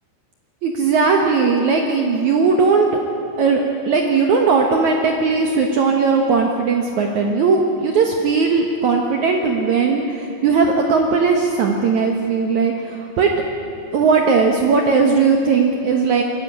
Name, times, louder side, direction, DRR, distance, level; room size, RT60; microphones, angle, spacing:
voice 1, 0.6-2.9 3.4-13.3 13.9-16.2, right 4 dB, 65° right, 2 dB, 2.1 m, -18 dB
21.5 x 14.5 x 8.8 m, 2.5 s
omnidirectional pair, 4.6 m